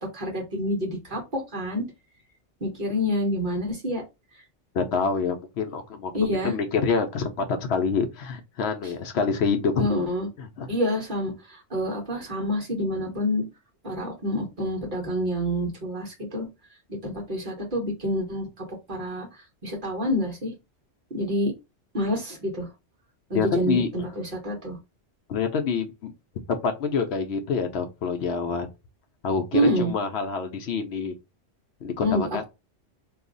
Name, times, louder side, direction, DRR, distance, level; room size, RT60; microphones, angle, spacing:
voice 1, 0.1-1.8 2.6-4.0 6.1-6.5 8.8-8.9 9.8-10.3 10.7-13.4 13.8-16.5 16.9-18.5 18.9-19.3 19.6-20.5 21.1-21.5 21.9-22.7 23.3-24.8 29.5-30.0 32.0-32.3, equal, 45° right, 1.3 m, -27 dB
voice 2, 4.7-9.9 10.4-10.7 23.3-23.9 25.3-26.1 26.5-28.7 29.2-31.1 31.8-32.4, left 5 dB, 70° left, 0.8 m, -26 dB
2.7 x 2.4 x 3.7 m
omnidirectional pair, 1.2 m